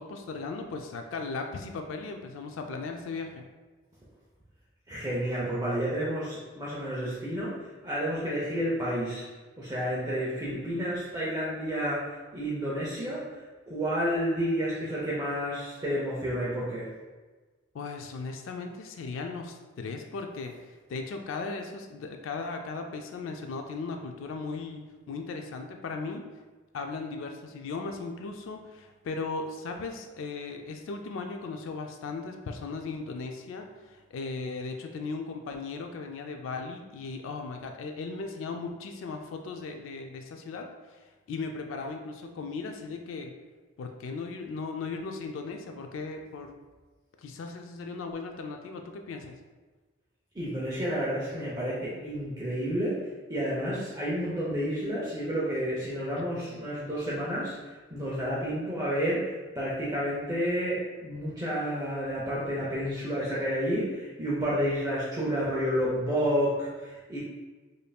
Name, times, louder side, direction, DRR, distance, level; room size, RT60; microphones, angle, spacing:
voice 1, 0.0-3.5 17.7-26.2 26.7-43.3 43.8-46.6 47.2-49.4 56.1-56.2 56.5-56.6, left 4 dB, 70° left, 4 dB, 0.3 m, -37 dB
voice 2, 4.9-9.3 9.6-16.9 50.3-67.2, equal, 20° right, -7 dB, 0.5 m, -30 dB
5.2 x 2.6 x 2.3 m, 1.3 s
head